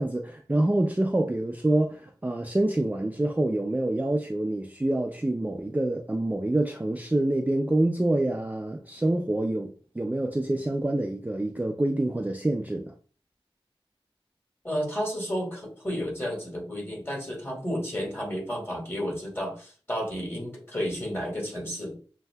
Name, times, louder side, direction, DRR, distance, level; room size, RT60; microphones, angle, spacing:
voice 1, 0.0-12.9, right 1 dB, 15° right, 0.4 m, -26 dB
voice 2, 14.6-22.0, equal, 25° left, 1.8 m, -32 dB
6.5 x 2.7 x 2.2 m
wide cardioid pair, 60°, 10 cm